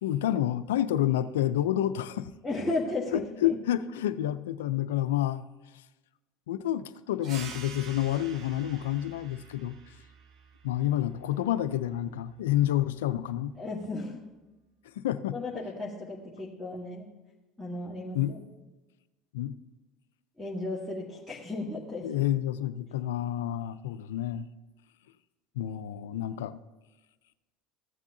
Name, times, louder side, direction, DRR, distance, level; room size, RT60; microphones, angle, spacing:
voice 1, 0.0-2.3 3.1-5.4 6.5-9.8 10.6-13.5 15.0-15.4 18.1-18.3 19.3-19.6 22.0-24.5 25.6-26.6, left 12 dB, 90° left, 13 dB, 0.4 m, -29 dB
voice 2, 2.4-3.5 13.6-14.2 15.3-17.1 17.6-18.4 20.4-22.1, left 2 dB, ahead, -8 dB, 1.5 m, -34 dB
sound 1, 7.2-12.4, right 6 dB, 50° right, 0.9 m, -48 dB
14.5 x 7.3 x 2.7 m, 1.1 s
supercardioid pair, 95°, 0 cm